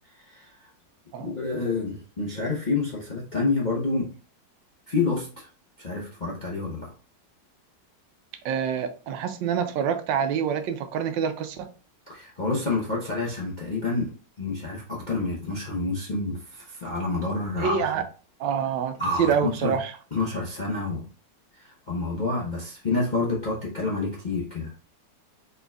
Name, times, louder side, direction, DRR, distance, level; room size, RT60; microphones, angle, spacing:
voice 1, 0.1-0.7 1.2-4.1 4.9-5.5 5.8-6.9 12.1-17.9 19.0-19.8 20.1-21.1 21.5-24.7, left 3 dB, 45° left, 0.6 m, -28 dB
voice 2, 8.4-11.7 17.6-18.0 18.4-19.9, right 7 dB, 85° right, 1.3 m, -26 dB
4.3 x 3.8 x 2.3 m
omnidirectional pair, 2.0 m